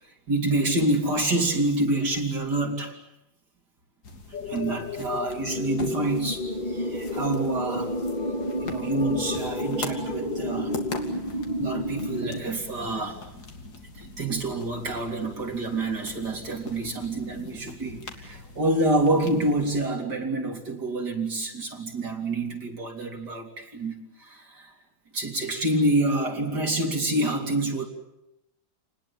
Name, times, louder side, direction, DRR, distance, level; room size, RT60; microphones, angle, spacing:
voice 1, 0.0-3.0 4.4-7.9 8.6-10.8 11.1-13.2 13.9-24.7 25.1-27.9, right 2 dB, 60° right, 4.1 m, -27 dB
sound 1, 4.0-19.8, left 3 dB, 55° left, 2.9 m, -42 dB
sound 2, 4.3-12.4, left 1 dB, 20° left, 2.3 m, -31 dB
29.0 x 20.0 x 8.9 m
omnidirectional pair, 2.1 m